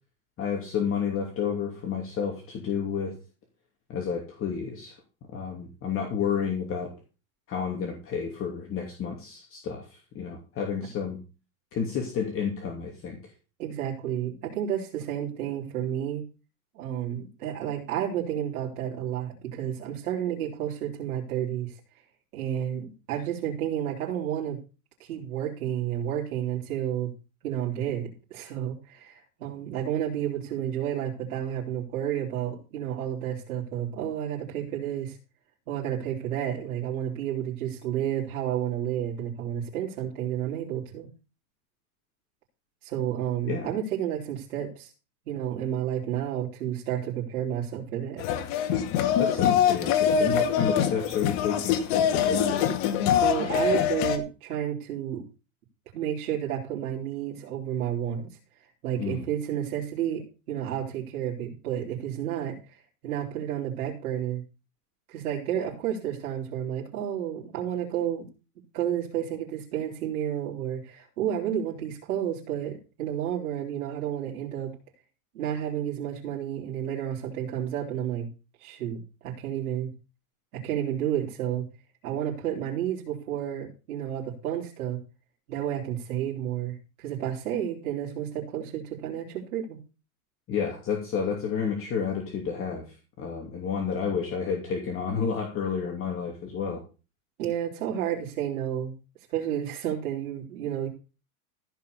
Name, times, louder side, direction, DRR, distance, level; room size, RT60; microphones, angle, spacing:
voice 1, 0.4-3.1 3.9-5.0 5.3-6.9 7.5-11.2 11.7-13.2 43.4-43.7 49.2-52.7 59.0-59.2 90.5-92.9 93.2-96.8, left 6 dB, 30° left, 1 dB, 2.8 m, -30 dB
voice 2, 13.6-16.2 16.7-21.8 22.3-24.6 25.0-27.1 27.4-35.2 35.7-41.1 42.8-44.9 45.3-48.2 53.1-55.2 55.9-58.3 58.8-64.4 65.1-68.2 68.7-74.7 75.3-78.3 78.6-79.9 80.5-81.7 82.0-85.0 85.5-89.8 97.4-98.9 99.3-100.9, right 10 dB, 85° right, -5 dB, 4.3 m, -31 dB
sound 1, 48.2-54.2, left 8 dB, 50° left, 2.2 m, -24 dB
15.5 x 5.8 x 6.9 m, 0.33 s
supercardioid pair, 145°, 44 cm